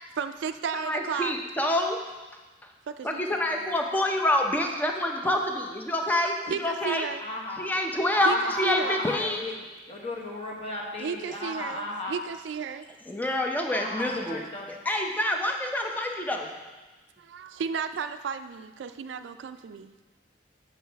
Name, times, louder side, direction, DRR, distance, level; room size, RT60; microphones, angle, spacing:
voice 1, 0.2-1.3 2.9-3.7 6.5-7.2 8.3-9.0 11.0-12.9 17.2-19.9, right 6 dB, 80° right, 10 dB, 0.3 m, -34 dB
voice 2, 0.7-2.0 3.0-7.1 7.6-9.4 13.1-14.4 14.9-16.5, left 1 dB, 10° left, 2 dB, 0.6 m, -27 dB
voice 3, 7.2-7.6 8.1-9.5 9.9-12.2 13.7-14.8, left 2 dB, 35° left, -2 dB, 1.1 m, -35 dB
7.4 x 6.3 x 3.4 m, 1.2 s
head